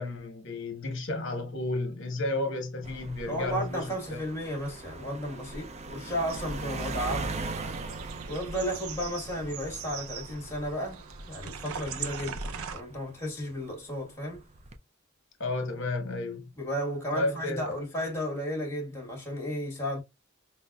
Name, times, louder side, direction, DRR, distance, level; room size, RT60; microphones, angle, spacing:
voice 1, 0.0-4.2 15.4-16.5 17.1-17.7, left 2 dB, 60° left, 1.2 m, -32 dB
sound 1, 2.8-13.6 14.3-14.8, right 3 dB, 30° right, 0.4 m, -40 dB
voice 2, 3.3-7.4 8.3-14.4 16.6-20.0, equal, 10° left, 1.4 m, -34 dB
sound 2, 6.3-12.8, right 5 dB, 90° right, 0.5 m, -40 dB
5.4 x 2.1 x 2.3 m
head